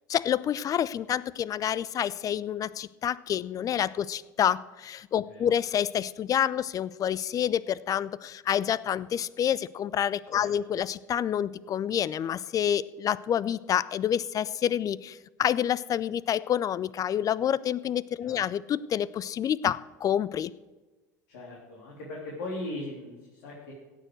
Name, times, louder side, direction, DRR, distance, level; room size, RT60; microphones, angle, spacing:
voice 1, 0.1-20.5, left 9 dB, 35° left, 20 dB, 0.5 m, -28 dB
voice 2, 18.2-18.5 21.3-23.7, left 2 dB, 75° left, -4 dB, 3.3 m, -39 dB
16.0 x 6.7 x 7.8 m, 1.2 s
hypercardioid pair, 75°, 10 cm